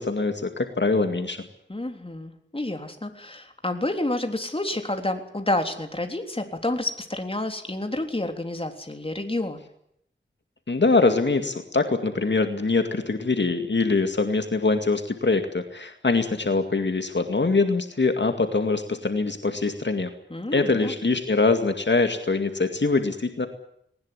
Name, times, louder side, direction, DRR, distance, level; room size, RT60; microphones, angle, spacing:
voice 1, 0.0-1.4 10.7-20.1 20.5-23.5, left 3 dB, 65° left, 6 dB, 2.2 m, -23 dB
voice 2, 1.7-9.7 20.3-21.0, left 1 dB, 30° left, 6 dB, 3.6 m, -29 dB
20.0 x 19.0 x 9.9 m, 0.73 s
wide cardioid pair, 60°, 20 cm